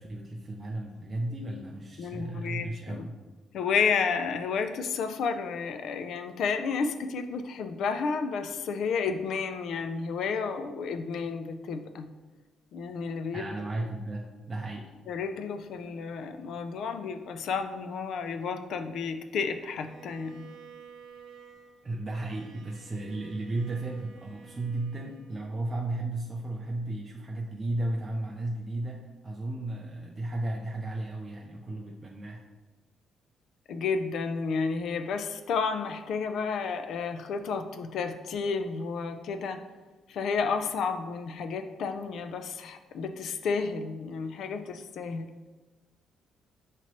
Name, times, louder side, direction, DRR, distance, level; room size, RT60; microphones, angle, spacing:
voice 1, 0.0-3.2 13.3-14.9 21.8-32.5, right 2 dB, 25° right, -1 dB, 0.4 m, -34 dB
voice 2, 2.0-3.1 3.5-12.1 12.7-13.5 13.8-13.9 15.1-20.4 33.7-39.6 40.1-45.3, left 5 dB, 65° left, 8 dB, 0.3 m, -31 dB
Bowed string instrument, 19.5-25.8, right 6 dB, 70° right, 0.7 m, -52 dB
5.8 x 3.0 x 2.9 m, 1.2 s
cardioid pair, 130°, 0 cm